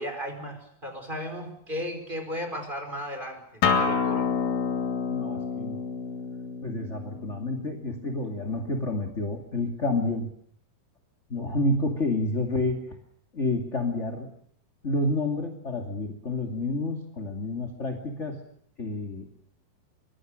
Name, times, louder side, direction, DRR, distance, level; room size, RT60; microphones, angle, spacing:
voice 1, 0.0-4.3, equal, 10° right, 7 dB, 5.1 m, -35 dB
Acoustic guitar, 3.6-8.8, left 5 dB, 60° left, 4.3 m, -29 dB
voice 2, 5.1-5.8 6.6-10.3 11.3-12.8 13.3-14.3 14.8-18.4 18.8-19.3, left 2 dB, 20° left, 4 dB, 2.3 m, -29 dB
24.5 x 24.5 x 6.6 m, 0.66 s
omnidirectional pair, 4.4 m